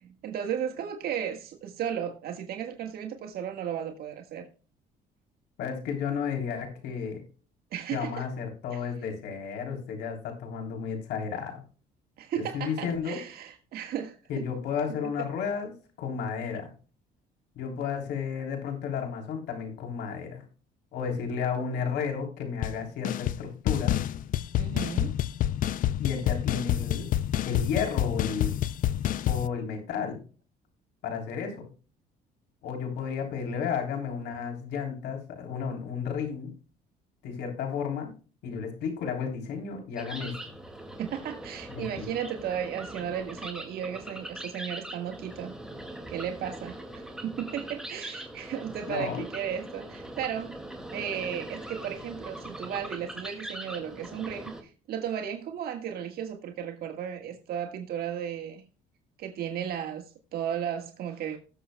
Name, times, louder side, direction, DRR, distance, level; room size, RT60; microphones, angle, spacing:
voice 1, 0.0-4.5 7.7-8.3 8.7-8.8 12.2-14.2 24.6-25.2 41.0-45.5 46.1-50.5 50.9-58.6 59.2-61.4, right 9 dB, 65° right, 1.6 m, -35 dB
voice 2, 5.6-7.2 7.9-11.6 12.4-13.2 14.3-15.7 16.0-16.7 17.6-20.4 20.9-23.9 26.0-27.2 27.5-28.5 29.3-30.2 31.0-31.6 32.6-36.5 37.2-38.1 38.4-40.3 41.7-42.1 48.9-49.2, left 6 dB, 80° left, 3.4 m, -32 dB
sound 1, 22.6-22.8 23.0-23.4 23.7-29.5, left 12 dB, 55° left, 0.4 m, -28 dB
sound 2, 40.0-54.6, right 1 dB, 5° right, 2.1 m, -41 dB
19.0 x 7.2 x 2.2 m
cardioid pair, 110°, 17 cm